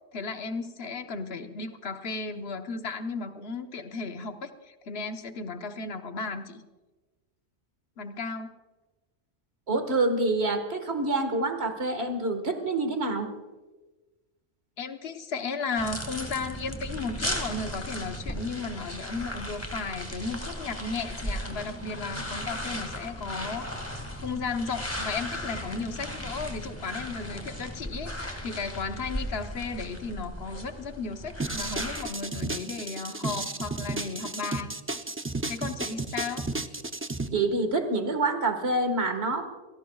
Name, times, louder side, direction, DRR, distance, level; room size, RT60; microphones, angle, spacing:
voice 1, 0.1-6.6 8.0-8.5 14.8-23.7 24.2-34.7 35.5-36.4, left 4 dB, 60° left, 7 dB, 1.2 m, -35 dB
voice 2, 9.7-13.3 37.3-39.5, right 2 dB, 60° right, 7 dB, 1.9 m, -27 dB
sound 1, 15.8-32.0, equal, 10° left, 2.0 m, -36 dB
sound 2, 31.4-37.3, right 3 dB, 20° right, 0.3 m, -33 dB
27.0 x 17.5 x 2.4 m, 1.2 s
omnidirectional pair, 1.2 m